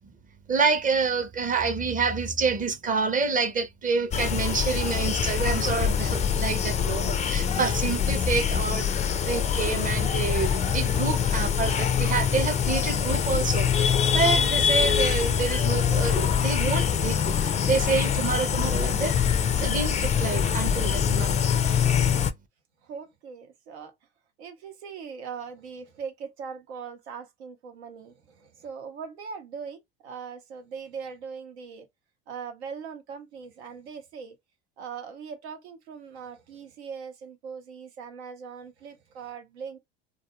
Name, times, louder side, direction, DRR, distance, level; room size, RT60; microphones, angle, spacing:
voice 1, 0.5-8.9 9.2-19.2 19.6-21.4, right 5 dB, 25° right, 0.6 m, -28 dB
sound 1, 4.1-22.3, left 7 dB, 25° left, 0.3 m, -24 dB
voice 2, 22.8-23.9 24.4-31.9 32.3-34.4 34.8-39.8, right 6 dB, 90° right, 0.8 m, -40 dB
2.3 x 2.2 x 2.9 m
hypercardioid pair, 85°, 32 cm